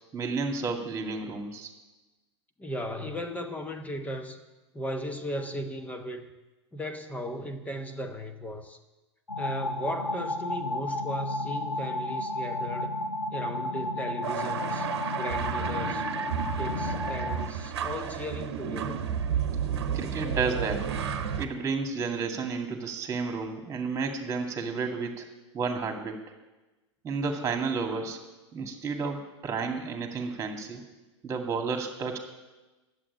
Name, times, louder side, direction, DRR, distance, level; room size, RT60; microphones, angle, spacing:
voice 1, 0.1-1.7 19.9-20.9 21.4-25.2 25.5-26.2 27.0-28.2 28.5-30.8 31.2-32.2, right 4 dB, 20° right, 4 dB, 2.1 m, -31 dB
voice 2, 2.6-4.4 4.7-6.3 6.7-8.8 9.4-12.9 13.3-14.9 15.1-16.1 16.6-19.0, equal, 10° left, 7 dB, 1.1 m, -36 dB
sound 1, 9.3-17.5, left 1 dB, 85° left, 0.8 m, -32 dB
sound 2, 14.2-21.5, right 8 dB, 60° right, 1.1 m, -32 dB
11.0 x 7.9 x 9.7 m, 1.1 s
figure-of-eight pair, 90°, 16 cm